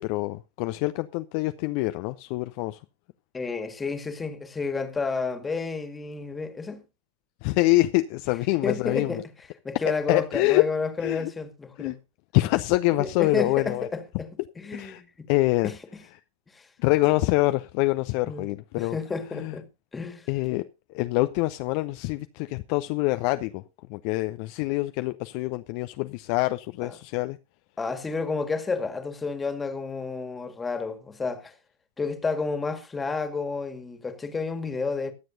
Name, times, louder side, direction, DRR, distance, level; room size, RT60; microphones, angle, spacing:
voice 1, 0.0-2.8 7.4-9.2 9.8-10.7 11.0-11.3 11.8-12.0 12.3-13.9 14.7-15.0 15.3-15.7 16.8-19.0 19.3-19.6 20.3-20.6 20.9-23.6 23.9-27.4, left 20 dB, 45° left, 0.6 m, -25 dB
voice 2, 3.3-6.8 8.6-9.2 9.6-12.0 13.0-14.3 14.6-15.3 15.6-15.7 16.5-16.7 18.3-18.5 18.8-19.7 19.9-20.3 26.8-27.0 27.8-31.6 32.0-35.1, left 4 dB, 15° left, 1.9 m, -31 dB
22.5 x 7.8 x 2.7 m
figure-of-eight pair, 90°, 0 cm